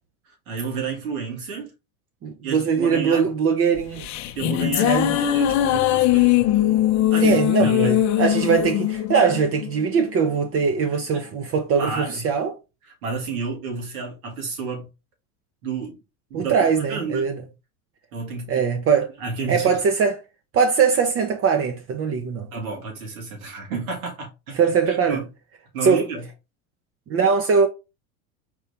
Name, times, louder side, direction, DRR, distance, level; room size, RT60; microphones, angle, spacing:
voice 1, 0.3-1.7 2.4-3.3 4.4-6.5 7.1-8.0 10.9-11.2 11.7-12.3 12.8-14.9 15.6-16.0 16.3-17.3 18.1-18.7 19.2-19.8 22.5-25.2 25.7-26.2, right 5 dB, 80° right, 2.0 m, -31 dB
voice 2, 2.2-4.1 4.8-5.2 7.2-12.5 16.3-17.4 18.5-19.1 19.5-20.2 20.5-22.5 24.6-25.2 25.8-26.0 27.1-27.7, right 6 dB, 35° right, 0.7 m, -21 dB
sound 1, 3.8-10.3, left 13 dB, 45° left, 0.6 m, -21 dB
4.4 x 2.7 x 3.3 m
hypercardioid pair, 105°, 42 cm